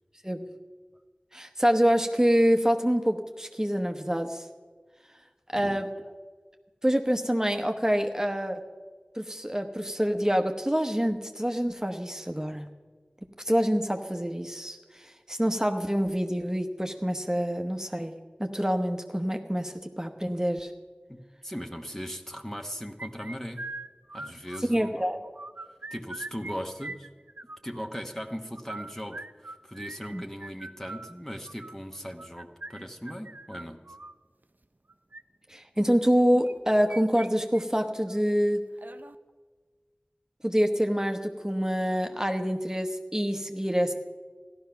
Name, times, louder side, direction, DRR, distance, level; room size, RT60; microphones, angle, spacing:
voice 1, 1.3-4.4 5.5-5.9 6.8-8.6 9.2-12.7 13.4-18.1 18.4-20.7 24.7-25.2 30.1-30.2 35.5-38.6 40.4-43.9, equal, 15° right, 5 dB, 1.0 m, -26 dB
voice 2, 21.1-23.6 24.1-24.9 25.9-27.1 27.6-33.8, equal, 10° left, 4 dB, 1.1 m, -38 dB
sound 1, 23.0-24.9 25.2-26.5 26.8-27.8 28.5-34.1 34.9-35.2 36.4-37.3 37.5-37.6 38.1-38.2 38.8-39.2, right 2 dB, 60° right, 0.5 m, -42 dB
15.5 x 12.0 x 5.8 m, 1.4 s
wide cardioid pair, 40°, 3 cm